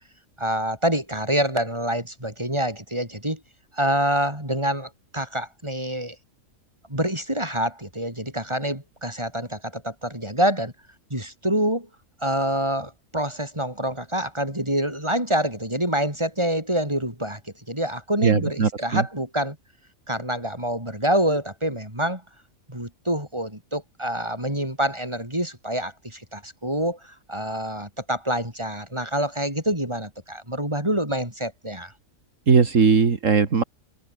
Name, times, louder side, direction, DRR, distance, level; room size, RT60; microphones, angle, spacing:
voice 1, 0.4-3.4 3.7-6.2 6.9-10.7 11.1-11.9 12.2-17.4 17.7-19.6 20.1-22.2 22.7-31.9, right 1 dB, 20° right, 7.7 m, -26 dB
voice 2, 18.2-19.0 32.5-33.6, right 5 dB, 65° right, 2.2 m, -19 dB
omnidirectional pair, 1.4 m